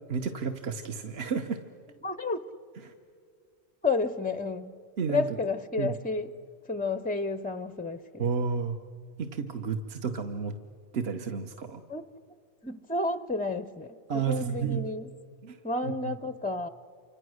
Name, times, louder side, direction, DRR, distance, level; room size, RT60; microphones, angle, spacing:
voice 1, 0.1-1.6 2.8-2.9 5.0-5.2 5.8-5.9 8.2-8.8 9.2-10.5 10.9-11.8 14.1-14.9 15.4-16.1, right 6 dB, 65° right, 6 dB, 1.2 m, -31 dB
voice 2, 2.0-2.4 3.8-4.7 5.1-6.3 6.7-8.3 11.9-12.0 12.6-15.1 15.6-16.7, left 3 dB, 15° left, 13 dB, 0.3 m, -31 dB
29.0 x 26.0 x 6.4 m, 2.3 s
omnidirectional pair, 1.2 m